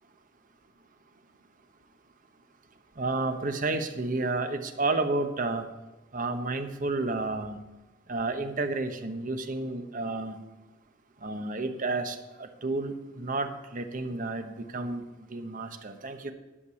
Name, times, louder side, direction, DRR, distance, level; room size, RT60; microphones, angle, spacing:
voice 1, 3.0-5.6 6.1-7.6 8.1-10.4 11.2-15.0 15.3-16.3, right 3 dB, 45° right, 6 dB, 1.0 m, -31 dB
11.0 x 6.7 x 7.0 m, 1.1 s
head